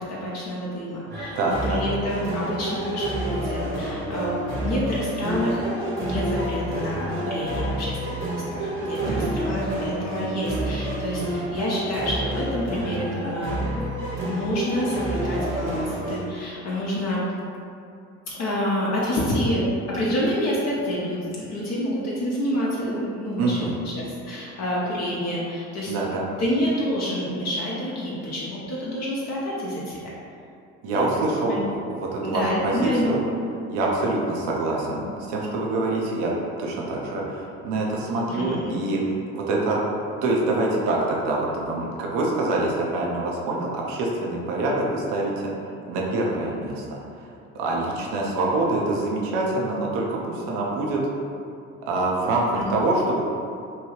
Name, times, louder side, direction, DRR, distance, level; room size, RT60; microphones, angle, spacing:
voice 1, 0.0-5.6 6.0-13.8 14.2-17.2 18.3-19.6 19.9-23.6 24.0-25.9 26.4-30.0 31.1-31.6 32.2-33.1 38.3-38.8 52.5-52.7, equal, 50° left, -6 dB, 0.7 m, -28 dB
sound 1, 1.1-16.2, right 1 dB, 35° right, 0.9 m, -29 dB
voice 2, 1.4-1.8 9.0-9.3 23.4-23.8 25.9-26.3 30.8-33.2 33.7-36.3 36.6-39.0 39.3-39.8 40.2-45.5 45.9-47.0 47.5-51.0 51.8-53.3, right 2 dB, 70° right, -2 dB, 0.6 m, -25 dB
2.9 x 2.3 x 3.1 m, 2.5 s
hypercardioid pair, 70°, 35 cm